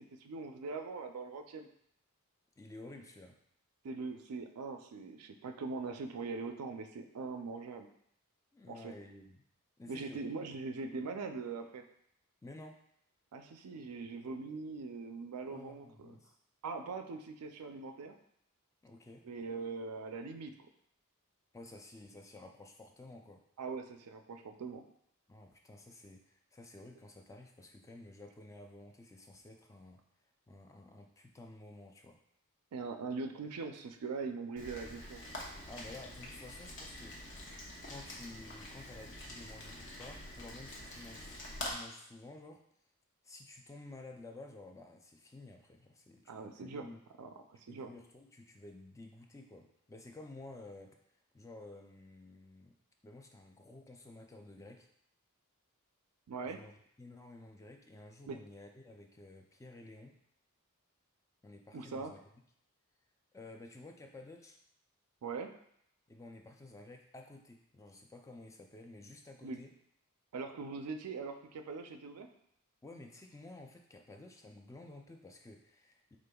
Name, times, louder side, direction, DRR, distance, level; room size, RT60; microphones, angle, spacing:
voice 1, 0.0-1.7 3.8-7.9 8.7-8.9 9.9-11.8 13.3-16.2 16.6-18.1 19.2-20.5 23.6-24.8 32.7-35.2 46.3-46.9 47.2-47.9 56.3-56.6 58.3-58.4 61.7-62.1 65.2-65.5 69.4-69.6 70.3-72.3, right 4 dB, 85° right, 6 dB, 0.4 m, -42 dB
voice 2, 2.6-3.4 8.5-9.4 9.8-10.2 12.4-12.8 15.5-16.4 18.8-19.2 21.5-23.4 25.3-30.0 30.5-32.2 35.7-37.2 37.9-42.6 43.2-47.0 47.7-51.0 51.3-52.7 53.0-54.9 56.4-56.7 57.0-60.2 61.4-62.2 63.3-64.6 66.1-69.7 72.8-76.2, left 2 dB, 15° left, 3 dB, 0.3 m, -52 dB
Rain, 34.6-41.7, left 1 dB, 55° left, 0.9 m, -46 dB
5.1 x 3.6 x 2.3 m, 0.71 s
head